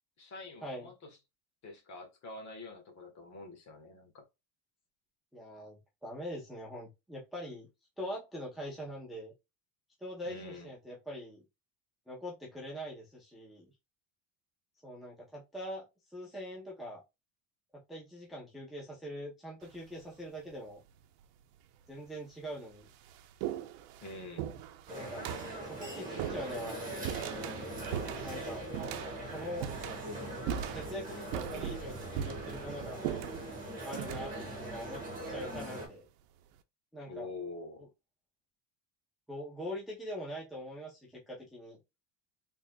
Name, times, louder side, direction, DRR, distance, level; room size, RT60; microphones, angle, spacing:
voice 1, 0.2-1.1 1.6-4.2 10.2-10.7 24.0-24.5 37.0-37.8, left 3 dB, 35° left, 1.4 m, -46 dB
voice 2, 5.3-7.7 8.0-9.3 10.0-11.4 12.1-13.7 14.8-17.0 17.7-20.8 21.9-22.9 24.9-25.3 25.6-26.9 28.2-28.7 29.2-29.7 30.5-33.0 33.8-35.0 35.3-36.0 36.9-37.3 37.8-37.9 39.3-41.8, equal, ahead, 0.6 m, -43 dB
sound 1, 19.6-20.1 21.0-21.1 21.9-22.0 22.4-36.0, right 10 dB, 80° right, 0.8 m, -41 dB
sound 2, 24.9-35.9, right 1 dB, 15° right, 1.7 m, -41 dB
4.1 x 3.6 x 2.2 m
cardioid pair, 170°, 48 cm